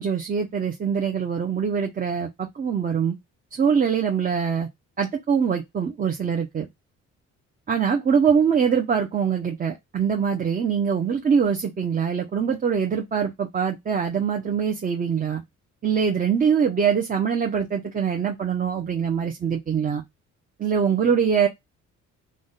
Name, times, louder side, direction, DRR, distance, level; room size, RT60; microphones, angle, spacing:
voice 1, 0.0-3.2 3.5-4.7 5.0-6.7 7.7-15.4 15.8-20.0 20.6-21.5, right 7 dB, 30° right, 0.5 m, -23 dB
2.5 x 2.1 x 3.7 m
cardioid pair, 90°, 30 cm